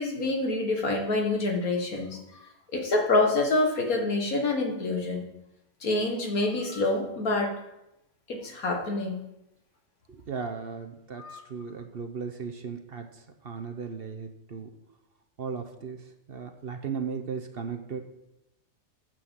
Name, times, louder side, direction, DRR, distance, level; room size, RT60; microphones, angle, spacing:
voice 1, 0.0-2.2 2.7-5.2 5.8-7.5 8.3-9.2 11.2-11.4, left 2 dB, 80° left, 2 dB, 2.1 m, -26 dB
voice 2, 10.1-14.7 15.4-18.0, right 6 dB, 50° right, 6 dB, 1.0 m, -36 dB
9.0 x 6.3 x 7.5 m, 0.87 s
omnidirectional pair, 1.5 m